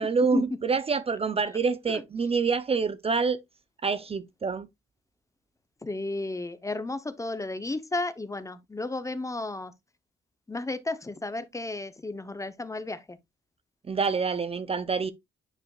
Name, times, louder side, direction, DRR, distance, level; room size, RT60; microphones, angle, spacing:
voice 1, 0.0-3.4 3.8-4.7 13.9-15.1, right 5 dB, 30° right, 0.6 m, -27 dB
voice 2, 5.8-9.7 10.5-13.2, left 2 dB, 15° left, 0.8 m, -33 dB
9.7 x 5.0 x 2.4 m
cardioid pair, 90°, 20 cm